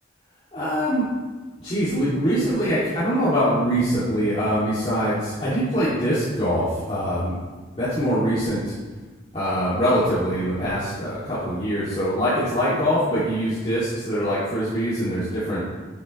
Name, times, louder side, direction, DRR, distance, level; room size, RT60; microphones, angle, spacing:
voice 1, 0.5-1.0 1.6-7.4 7.8-8.7 9.3-15.6, equal, 30° left, -12 dB, 2.5 m, -23 dB
11.5 x 8.4 x 3.2 m, 1.3 s
head